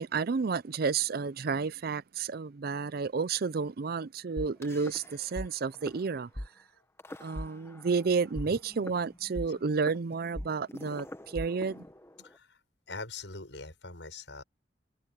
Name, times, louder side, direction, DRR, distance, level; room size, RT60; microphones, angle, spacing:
voice 1, 0.0-6.3 7.2-11.8, right 5 dB, 55° right, 0.5 m, -31 dB
sound 1, 4.4-5.5 5.7-6.0 6.4-6.5 7.0-8.0 8.4-12.4, equal, 15° left, 1.2 m, -41 dB
voice 2, 12.2-12.6 12.9-14.4, left 3 dB, 85° left, 6.9 m, -43 dB
head